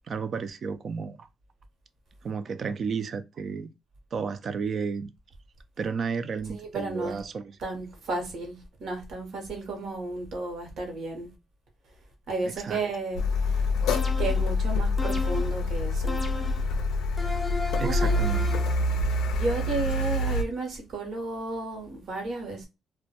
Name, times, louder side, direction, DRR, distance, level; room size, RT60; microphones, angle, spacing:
voice 1, 0.1-1.3 2.2-3.7 4.1-5.1 5.8-7.6 12.6-12.8 17.8-18.4, right 5 dB, 50° right, 0.3 m, -32 dB
voice 2, 6.5-7.2 7.6-11.3 12.3-13.7 14.2-16.2 17.8-18.2 19.3-22.7, right 2 dB, 70° right, 0.8 m, -33 dB
Car, 13.2-20.4, left 2 dB, 85° left, 0.4 m, -26 dB
sound 1, 13.9-14.5 15.0-15.6 16.1-16.7 17.2-18.8, left 2 dB, 20° left, 0.4 m, -35 dB
2.1 x 2.1 x 2.7 m
cardioid pair, 90°, 0 cm